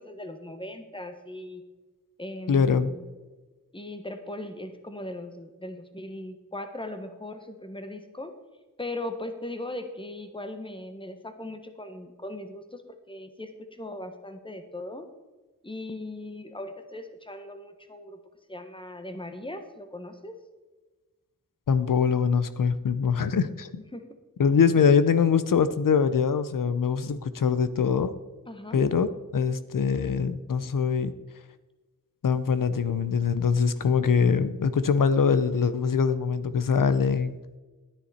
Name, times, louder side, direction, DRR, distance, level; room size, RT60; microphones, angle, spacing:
voice 1, 0.0-1.6 2.2-3.0 3.7-8.3 8.8-15.1 15.6-18.2 18.5-20.3 23.9-24.1 28.5-28.8, left 1 dB, 15° left, 8 dB, 1.2 m, -39 dB
voice 2, 2.5-2.9 21.7-23.7 24.4-28.1 28.7-31.1 32.2-37.4, left 6 dB, 85° left, 13 dB, 0.6 m, -23 dB
11.0 x 9.7 x 4.2 m, 1.2 s
wide cardioid pair, 65°, 32 cm